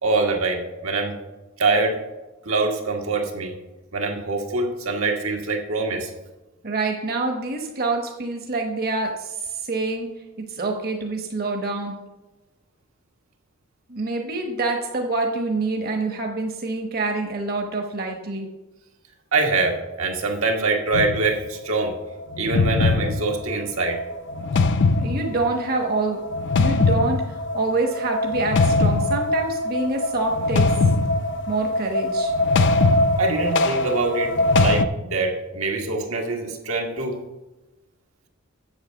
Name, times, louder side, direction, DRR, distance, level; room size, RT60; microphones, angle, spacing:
voice 1, 0.0-1.1 1.6-2.0 2.4-3.5 3.9-6.1 19.3-21.9 22.4-24.0 33.2-37.2, right 3 dB, 85° right, 1 dB, 1.7 m, -24 dB
voice 2, 6.6-10.1 10.4-12.0 13.9-18.5 25.0-26.2 26.5-30.7 31.5-32.3, right 3 dB, 50° right, 3 dB, 1.0 m, -26 dB
sound 1, 20.9-21.3 22.3-34.8, left 3 dB, 60° left, 0.5 m, -21 dB
8.1 x 7.4 x 6.4 m, 1.1 s
head